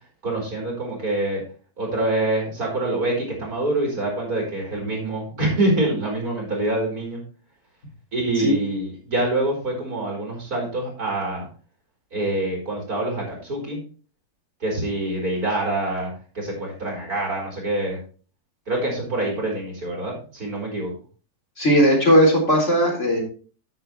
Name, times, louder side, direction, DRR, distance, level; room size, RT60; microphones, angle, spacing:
voice 1, 0.2-1.4 1.8-7.2 8.1-11.5 12.1-13.8 14.6-18.0 18.7-20.9, right 2 dB, 65° right, -2 dB, 4.6 m, -25 dB
voice 2, 21.6-23.2, equal, 45° left, -2 dB, 4.3 m, -17 dB
13.5 x 6.8 x 3.1 m, 0.38 s
omnidirectional pair, 1.7 m